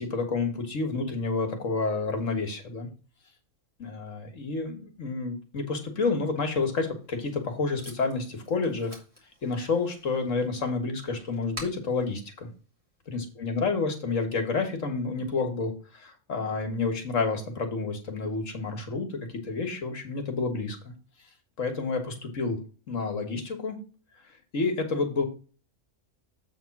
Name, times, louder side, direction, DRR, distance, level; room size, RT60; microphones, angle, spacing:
voice 1, 0.0-2.9 3.8-9.0 9.4-12.5 13.1-20.8 21.6-22.6 22.9-23.8 24.5-25.2, left 4 dB, 75° left, 5 dB, 1.8 m, -29 dB
Packing tape duct tape, 6.8-13.3, equal, 25° right, 2.4 m, -49 dB
7.9 x 3.7 x 5.9 m, 0.35 s
omnidirectional pair, 1.3 m